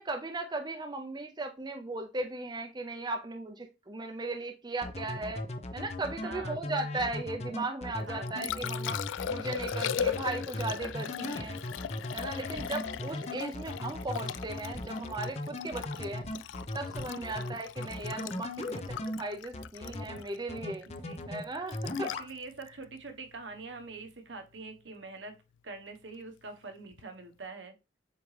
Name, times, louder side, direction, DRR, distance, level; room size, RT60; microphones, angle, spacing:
voice 1, 0.0-5.4 5.7-9.0 9.3-11.6 12.1-16.2 16.7-20.9 21.3-22.1, right 2 dB, 25° right, 0.6 m, -37 dB
sound 1, 4.8-19.2 19.5-20.2 20.5-21.4 21.7-22.3, left 1 dB, 35° left, 0.8 m, -37 dB
voice 2, 6.2-6.6 8.1-8.9 12.3-12.5 17.3-17.6 21.0-21.2 22.0-25.4 25.6-27.7, right 3 dB, 70° right, 1.3 m, -45 dB
Liquid, 8.0-24.1 26.9-27.0, left 8 dB, 90° left, 0.3 m, -39 dB
sound 2, 14.7-20.5, equal, 65° left, 2.6 m, -55 dB
7.9 x 3.7 x 3.3 m
head